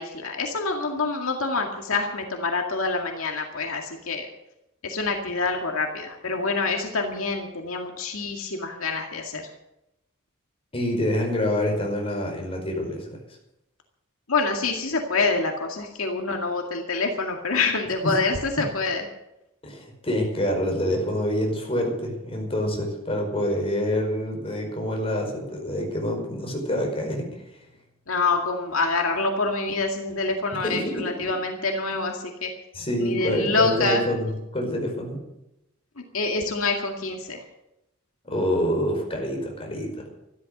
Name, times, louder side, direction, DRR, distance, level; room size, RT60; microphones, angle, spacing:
voice 1, 0.0-4.3 4.8-9.4 14.3-19.1 28.1-32.5 33.0-34.0 36.1-37.4, left 3 dB, 80° left, 2 dB, 2.1 m, -26 dB
voice 2, 10.7-13.2 18.0-18.1 19.6-27.4 30.6-31.1 32.7-35.2 38.3-40.1, equal, 30° left, 1 dB, 5.1 m, -26 dB
14.0 x 13.0 x 6.6 m, 0.88 s
head